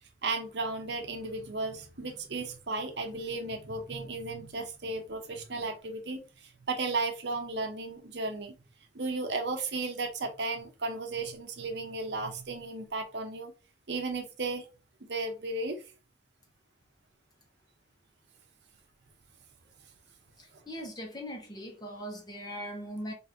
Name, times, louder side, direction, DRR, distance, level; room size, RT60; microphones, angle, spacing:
voice 1, 0.2-8.5 8.9-13.5 13.9-14.7 15.0-15.8, right 3 dB, 60° right, 0.8 m, -34 dB
voice 2, 20.4-23.1, equal, 20° left, 0.9 m, -40 dB
4.2 x 2.6 x 3.5 m
head